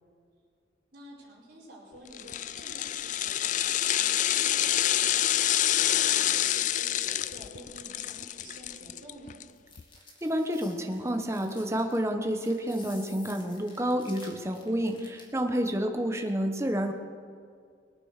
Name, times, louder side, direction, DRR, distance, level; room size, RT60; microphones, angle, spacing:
voice 1, 0.9-9.4, right 1 dB, 50° right, -8 dB, 4.8 m, -49 dB
sound 1, 2.1-9.4 9.8-9.9, left 12 dB, 40° left, 0.3 m, -27 dB
sound 2, 9.5-15.4, left 3 dB, 25° left, 2.4 m, -52 dB
voice 2, 10.2-16.9, equal, 15° right, 5 dB, 1.1 m, -29 dB
21.0 x 9.3 x 6.6 m, 2.2 s
head